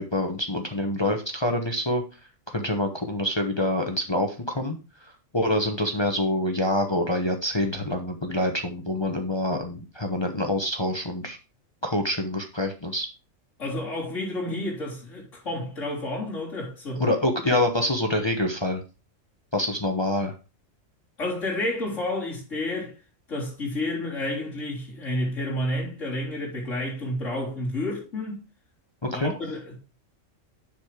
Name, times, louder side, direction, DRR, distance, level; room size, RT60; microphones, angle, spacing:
voice 1, 0.0-2.0 2.5-11.4 11.8-13.1 17.0-18.8 19.5-20.3 29.0-29.3, left 1 dB, 20° left, 1.0 m, -26 dB
voice 2, 13.6-17.0 21.2-22.9 23.3-28.5 29.1-29.8, left 1 dB, 70° left, 3.9 m, -30 dB
7.2 x 6.4 x 5.0 m
omnidirectional pair, 1.4 m